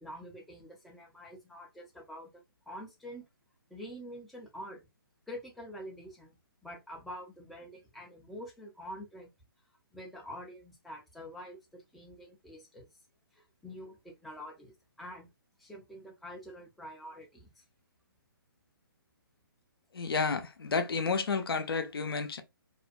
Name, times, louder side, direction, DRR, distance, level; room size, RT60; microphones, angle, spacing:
voice 1, 0.0-3.2 3.7-4.9 5.3-6.4 6.6-9.3 9.9-12.9 13.3-15.3 15.6-17.6, equal, ahead, 0.4 m, -46 dB
voice 2, 19.9-22.4, left 4 dB, 80° left, 0.5 m, -31 dB
2.5 x 2.1 x 2.4 m
hypercardioid pair, 140°, 12 cm